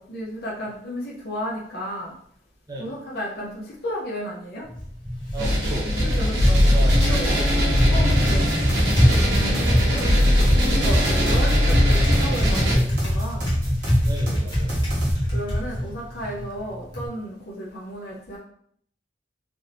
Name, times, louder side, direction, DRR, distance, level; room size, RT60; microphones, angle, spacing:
voice 1, 0.0-2.1 2.8-4.7 6.2-6.8 7.1-7.4 7.9-8.5 9.4-10.2 10.6-13.5 15.3-18.4, equal, 55° left, -3 dB, 0.6 m, -33 dB
Typing, 4.6-17.1, equal, 25° left, 0.9 m, -24 dB
voice 2, 5.3-5.9 6.6-7.6 8.2-8.4 14.0-14.8, right 1 dB, 20° right, -1 dB, 0.5 m, -35 dB
sound 1, 5.4-12.7, equal, 70° right, 1.0 m, -20 dB
sound 2, 8.3-15.1, right 1 dB, 45° right, 1.2 m, -28 dB
3.4 x 2.6 x 2.7 m, 0.65 s
head